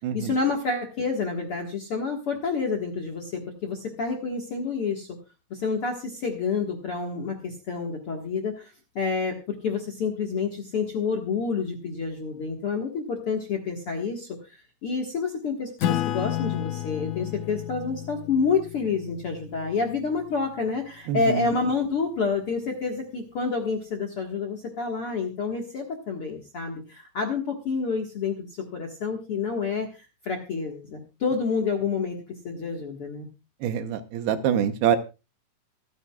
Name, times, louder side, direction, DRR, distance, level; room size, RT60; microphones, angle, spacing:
voice 1, 0.1-5.1 5.5-14.6 14.8-28.5 28.7-32.2 32.4-33.3, left 5 dB, 50° left, 1 dB, 1.7 m, -28 dB
Acoustic guitar / Strum, 15.8-20.8, left 12 dB, 80° left, 1.7 m, -32 dB
voice 2, 21.1-21.4 33.6-35.0, right 9 dB, 75° right, 9 dB, 2.8 m, -25 dB
25.5 x 8.8 x 2.4 m, 0.29 s
omnidirectional pair, 4.8 m